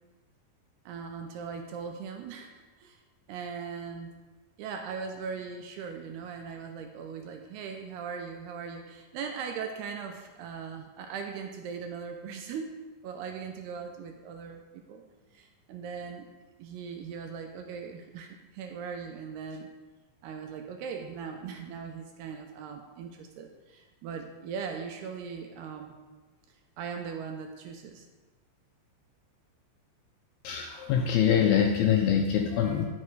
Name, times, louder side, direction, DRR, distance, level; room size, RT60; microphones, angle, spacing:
voice 1, 0.9-3.0 3.3-4.1 4.6-12.7 13.0-15.0 15.3-16.3 16.6-19.7 20.2-26.0 26.8-28.1, right 6 dB, 80° right, 4 dB, 2.5 m, -39 dB
voice 2, 30.4-32.8, left 8 dB, 80° left, 2 dB, 2.2 m, -24 dB
11.0 x 7.4 x 4.8 m, 1.2 s
omnidirectional pair, 5.1 m